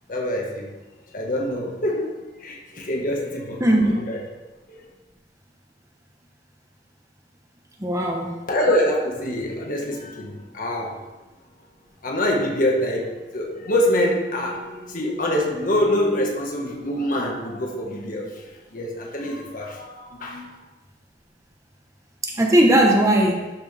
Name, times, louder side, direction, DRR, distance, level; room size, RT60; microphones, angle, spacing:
voice 1, 0.1-0.7 1.1-4.2 4.7-4.8 8.5-11.0 12.0-18.4 18.7-20.5, left 1 dB, 50° left, 0 dB, 1.7 m, -25 dB
voice 2, 3.6-3.9 7.8-8.3 22.2-23.5, right 1 dB, 20° right, 0 dB, 1.2 m, -18 dB
12.0 x 6.3 x 3.5 m, 1.1 s
head